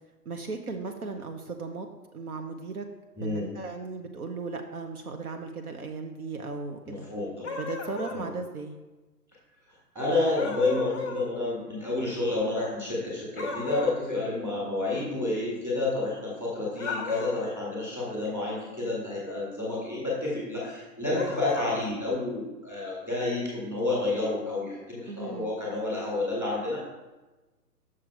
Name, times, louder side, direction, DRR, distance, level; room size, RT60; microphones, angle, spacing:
voice 1, 0.2-1.9 2.1-2.9 3.2-7.1 7.6-8.8 25.1-25.5, right 4 dB, 60° right, 4 dB, 0.9 m, -36 dB
voice 2, 3.2-3.5 6.8-7.5 8.1-8.3 9.9-26.8, left 2 dB, 5° right, -6 dB, 1.6 m, -30 dB
sound 1, 7.4-8.2 10.4-11.2 13.4-14.0 16.7-17.5 21.1-21.7, left 4 dB, 15° left, 0.7 m, -34 dB
6.3 x 6.0 x 4.6 m, 1.1 s
figure-of-eight pair, 145°, 49 cm